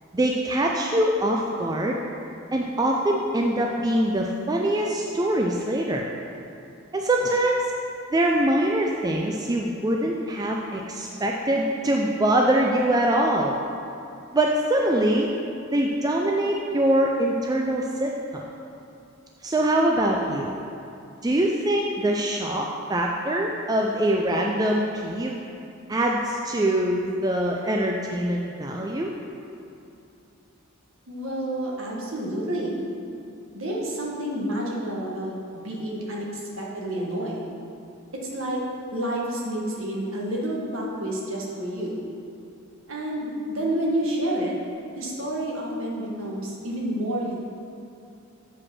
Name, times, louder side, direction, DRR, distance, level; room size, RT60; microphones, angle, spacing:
voice 1, 0.1-2.0 2.5-6.1 6.9-7.6 8.1-13.6 14.3-15.3 15.7-18.4 19.4-20.5 21.2-25.4 25.9-29.1, right 1 dB, 15° right, -1 dB, 0.4 m, -23 dB
voice 2, 31.1-32.8 33.5-37.4 38.1-38.6 38.9-42.0 42.9-44.5 44.9-47.4, right 1 dB, 65° right, -3 dB, 1.5 m, -29 dB
7.8 x 4.9 x 6.0 m, 2.7 s
head